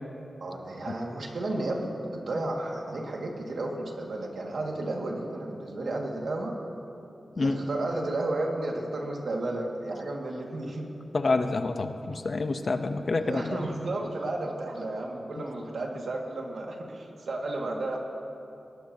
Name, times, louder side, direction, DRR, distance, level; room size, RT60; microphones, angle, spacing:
voice 1, 0.4-6.6 7.3-10.9 13.1-18.0, right 2 dB, 70° right, 0 dB, 2.1 m, -33 dB
voice 2, 11.1-13.6 15.4-15.5, left 3 dB, 55° left, 7 dB, 0.9 m, -28 dB
21.0 x 18.5 x 2.9 m, 2.7 s
wide cardioid pair, 80°, 0 cm